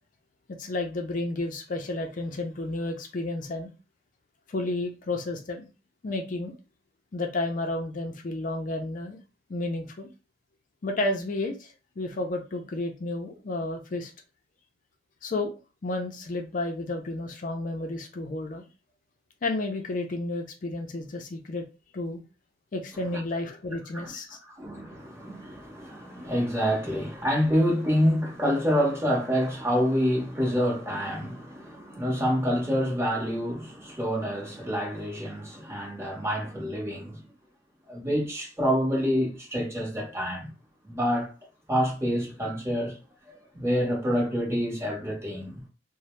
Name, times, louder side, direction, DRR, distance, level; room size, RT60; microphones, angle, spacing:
voice 1, 0.6-3.7 4.5-5.7 6.0-6.5 7.1-9.2 9.5-10.1 10.8-14.1 15.2-15.5 15.8-18.6 19.4-21.7 21.9-22.2 22.7-24.4, left 2 dB, 45° left, 0.4 m, -31 dB
voice 2, 24.6-37.2 37.9-40.5 40.8-41.3 41.7-43.0 43.3-45.6, equal, 15° right, 0.9 m, -27 dB
2.6 x 2.0 x 3.0 m
head